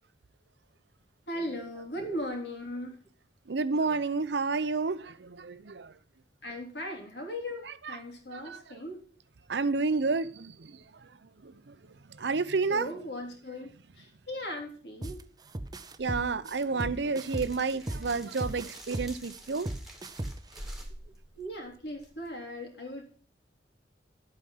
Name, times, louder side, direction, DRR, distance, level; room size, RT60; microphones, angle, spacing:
voice 1, 1.3-3.0 6.4-9.0 12.7-15.2 21.4-23.0, left 1 dB, 65° left, 3.5 m, -38 dB
voice 2, 3.5-5.9 7.7-8.0 8.3-8.8 9.5-10.8 11.4-11.7 12.2-12.9 16.0-19.7, right 4 dB, 70° right, 0.7 m, -30 dB
sound 1, 15.0-15.2 15.5-18.1 18.4-20.6, right 1 dB, 20° right, 0.7 m, -36 dB
sound 2, 16.0-22.3, right 1 dB, ahead, 1.9 m, -48 dB
11.0 x 8.5 x 5.6 m
head